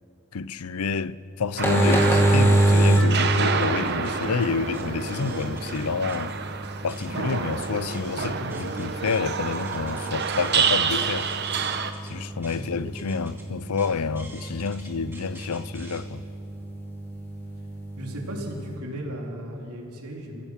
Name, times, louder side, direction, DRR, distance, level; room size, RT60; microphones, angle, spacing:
voice 1, 0.3-6.3 6.8-11.3 12.1-16.2, left 5 dB, 85° left, 0.6 m, -29 dB
sound 1, 1.5-18.8, right 1 dB, 10° left, 2.0 m, -27 dB
sound 2, 1.6-11.9, right 5 dB, 50° right, 1.0 m, -28 dB
sound 3, 2.7-6.3 6.6-16.0, right 2 dB, 10° right, 2.7 m, -48 dB
voice 2, 18.0-20.5, right 1 dB, 85° right, 3.7 m, -35 dB
29.0 x 16.0 x 5.9 m
head